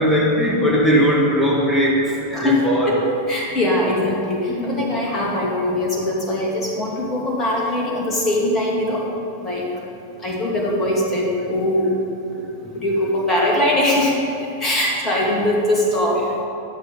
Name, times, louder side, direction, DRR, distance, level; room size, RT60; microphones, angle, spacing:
voice 1, 0.0-3.0 4.5-4.8 12.6-12.8, equal, ahead, -5 dB, 1.6 m, -19 dB
voice 2, 2.3-3.0 3.3-9.1 9.4-9.7 10.2-12.0 12.4-16.2, left 1 dB, 20° left, -3 dB, 2.3 m, -21 dB
11.0 x 6.8 x 5.4 m, 2.9 s
figure-of-eight pair, 90°, 0 cm